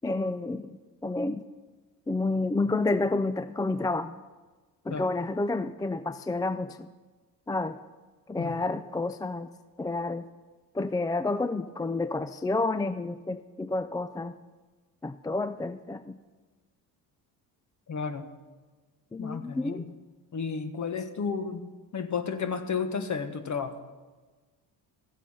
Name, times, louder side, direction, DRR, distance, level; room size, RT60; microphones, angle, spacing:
voice 1, 0.0-0.8 1.0-1.4 2.1-4.1 4.9-6.9 7.5-7.8 8.3-9.5 9.8-10.3 10.7-14.3 15.0-16.2 19.1-19.9, left 2 dB, 10° left, 12 dB, 0.3 m, -29 dB
voice 2, 17.9-18.3 19.2-19.8 20.3-23.7, left 5 dB, 45° left, 9 dB, 1.3 m, -32 dB
14.0 x 8.2 x 5.6 m, 1.3 s
supercardioid pair, 75°, 42 cm